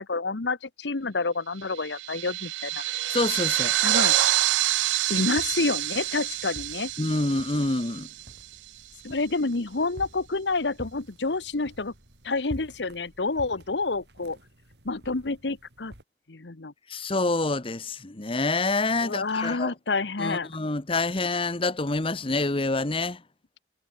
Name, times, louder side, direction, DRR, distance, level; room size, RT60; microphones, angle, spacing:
voice 1, 0.0-2.8 3.8-4.2 5.1-6.9 9.0-11.9 12.2-14.4 14.8-15.9 16.3-16.7 19.0-20.5, left 3 dB, 75° left, 1.2 m, -28 dB
sound 1, 1.7-8.6, right 16 dB, 85° right, 0.4 m, -27 dB
voice 2, 3.1-3.8 7.0-8.1 16.9-19.7 20.2-23.2, left 2 dB, 30° left, 1.1 m, -27 dB
sound 2, 5.3-16.0, right 1 dB, 65° right, 4.0 m, -48 dB
head